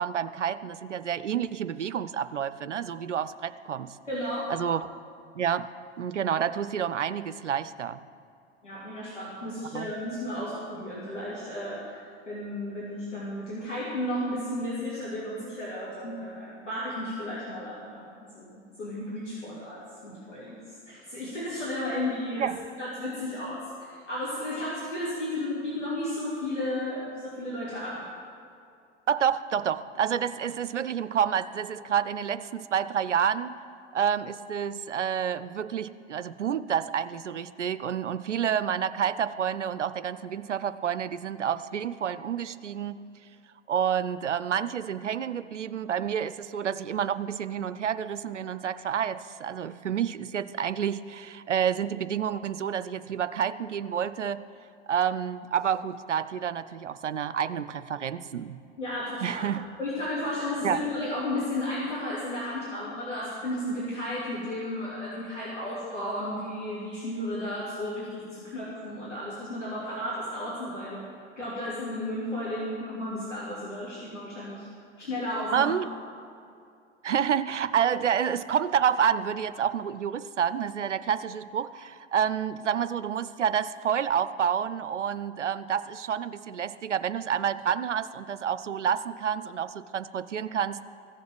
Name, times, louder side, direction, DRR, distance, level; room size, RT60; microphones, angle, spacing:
voice 1, 0.0-4.0 4.5-4.9 5.3-5.7 6.0-8.0 9.7-9.9 22.4-22.7 29.1-33.6 33.9-43.0 43.7-54.4 54.9-58.6 59.2-59.6 60.6-60.8 75.5-75.9 77.0-90.8, right 8 dB, 85° right, 15 dB, 0.5 m, -29 dB
voice 2, 4.1-4.4 8.6-20.6 20.9-28.1 58.8-59.5 59.8-71.0 71.4-74.7 75.0-75.7, left 1 dB, 85° left, -9 dB, 2.9 m, -33 dB
15.0 x 7.1 x 7.6 m, 2.4 s
figure-of-eight pair, 80°, 35 cm